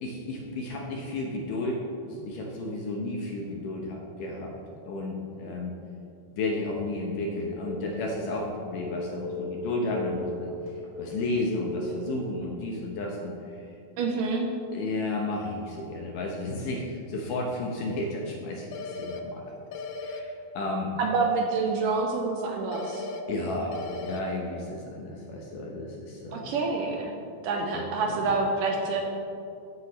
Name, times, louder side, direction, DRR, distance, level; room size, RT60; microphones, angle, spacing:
voice 1, 0.0-4.6 4.9-5.7 6.3-10.5 11.0-13.7 14.7-19.5 20.0-20.9 23.3-26.5 27.7-28.2, left 2 dB, 70° left, -1 dB, 2.3 m, -32 dB
Telephone, 7.4-12.6, left 2 dB, 40° left, 3.2 m, -38 dB
voice 2, 14.0-14.5 21.0-23.1 26.3-27.1 27.4-29.0, right 4 dB, 75° right, 1 dB, 2.2 m, -27 dB
sound 1, 18.7-19.2 19.7-20.2 22.7-23.2 23.7-24.2, left 4 dB, 85° left, 2.5 m, -36 dB
16.0 x 8.6 x 3.1 m, 2.6 s
omnidirectional pair, 4.3 m